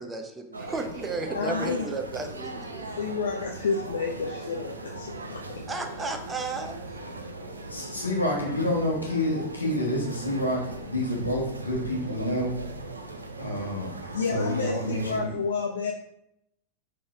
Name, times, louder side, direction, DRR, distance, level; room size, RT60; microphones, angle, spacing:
voice 1, 0.0-2.9 5.7-7.0, right 3 dB, 15° right, 5 dB, 0.6 m, -34 dB
sound 1, 0.5-15.2, right 2 dB, 75° right, 0.5 m, -39 dB
voice 2, 1.3-1.9 2.9-5.7 14.0-15.9, left 5 dB, 65° left, 0 dB, 0.4 m, -30 dB
voice 3, 7.6-12.5 13.4-13.9 14.3-15.3, left 1 dB, 80° left, -2 dB, 1.1 m, -28 dB
3.8 x 3.3 x 3.6 m, 0.78 s
figure-of-eight pair, 90°, 0 cm